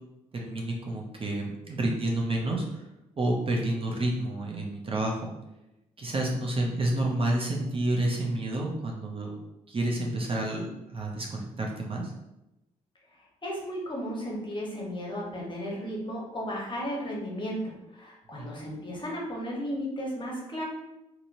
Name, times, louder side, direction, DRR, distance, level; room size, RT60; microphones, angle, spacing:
voice 1, 0.3-2.6 3.2-5.3 6.0-9.4 9.7-12.1 18.4-18.5, right 1 dB, 35° right, -1 dB, 0.7 m, -29 dB
voice 2, 13.4-20.6, equal, 30° left, -2 dB, 1.1 m, -34 dB
2.8 x 2.7 x 2.6 m, 0.94 s
hypercardioid pair, 45°, 16 cm